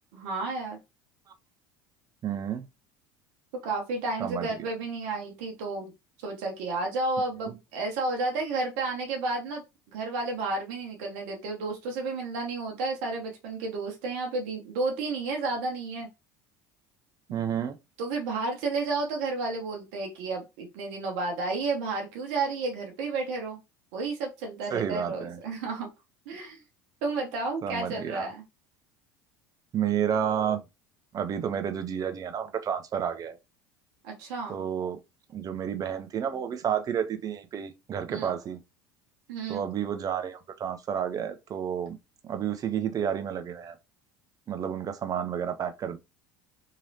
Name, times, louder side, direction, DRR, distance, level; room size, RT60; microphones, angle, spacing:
voice 1, 0.1-0.8 3.6-5.9 6.2-16.1 18.0-23.6 23.9-25.9 26.3-26.6 27.0-28.4 34.0-34.6 38.1-38.3 39.3-39.7, right 3 dB, 70° right, 0.9 m, -32 dB
voice 2, 2.2-2.7 4.2-4.7 17.3-17.8 24.7-25.4 27.6-28.3 29.7-30.6 31.1-33.4 34.5-35.0 35.3-38.6 39.5-42.0 42.2-43.8 44.5-46.0, right 8 dB, 40° right, 0.6 m, -30 dB
3.1 x 2.8 x 2.7 m
hypercardioid pair, 75°, 10 cm